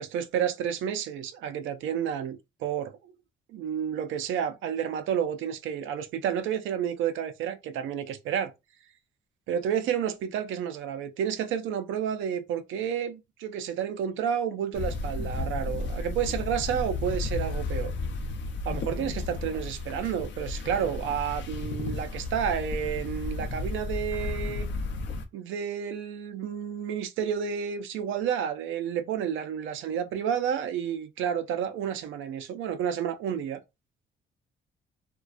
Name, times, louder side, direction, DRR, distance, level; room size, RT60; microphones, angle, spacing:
voice 1, 0.0-3.1 3.5-8.5 9.5-17.9 18.7-24.7 25.3-33.6, right 8 dB, 80° right, 0.4 m, -30 dB
sound 1, 14.7-25.2, left 3 dB, 65° left, 0.5 m, -33 dB
2.4 x 2.2 x 2.4 m
cardioid pair, 90°, 20 cm